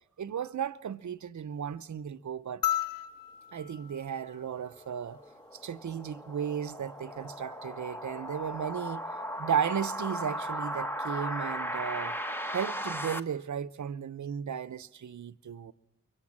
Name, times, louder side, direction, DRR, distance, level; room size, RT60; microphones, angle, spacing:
voice 1, 0.2-2.6 3.5-5.2 5.6-9.0 9.4-12.2 12.5-15.7, right 8 dB, 60° right, 0.9 m, -35 dB
sound 1, 2.6-5.2 6.8-6.9, left 12 dB, 85° left, 0.9 m, -35 dB
sound 2, 4.6-13.2, equal, 5° left, 1.1 m, -37 dB
26.0 x 23.0 x 7.4 m
cardioid pair, 75°, 33 cm